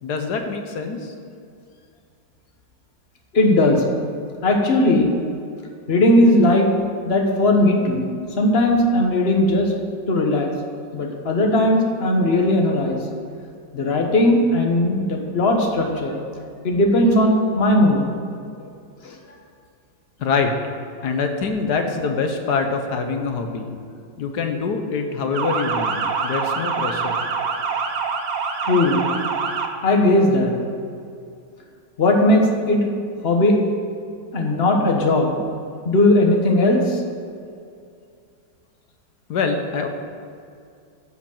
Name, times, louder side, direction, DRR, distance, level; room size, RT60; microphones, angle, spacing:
voice 1, 0.0-1.1 20.2-20.5 21.0-23.7 24.2-27.1 39.3-39.9, left 4 dB, 60° left, 5 dB, 1.5 m, -24 dB
voice 2, 3.3-3.8 4.4-5.1 5.9-6.7 7.0-8.1 8.4-9.7 10.1-10.5 10.9-13.0 13.7-16.2 16.6-18.1 19.0-19.1 28.6-29.1 29.8-30.5 32.0-32.9 33.2-33.6 34.3-35.4 35.8-37.0, left 1 dB, 35° left, 2 dB, 1.4 m, -18 dB
Motor vehicle (road) / Siren, 25.3-29.7, right 5 dB, 55° right, 1.2 m, -25 dB
14.5 x 5.2 x 7.3 m, 2.4 s
omnidirectional pair, 2.1 m